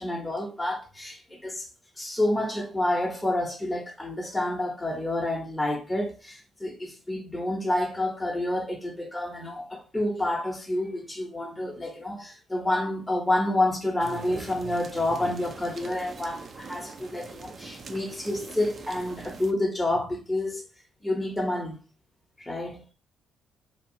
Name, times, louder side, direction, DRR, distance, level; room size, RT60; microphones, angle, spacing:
voice 1, 0.0-1.7 2.0-20.6 21.0-21.8 22.4-22.8, left 1 dB, 10° left, 0.8 m, -29 dB
sound 1, 14.0-19.5, right 4 dB, 45° right, 0.4 m, -42 dB
2.8 x 2.3 x 2.7 m
cardioid pair, 90°, 0 cm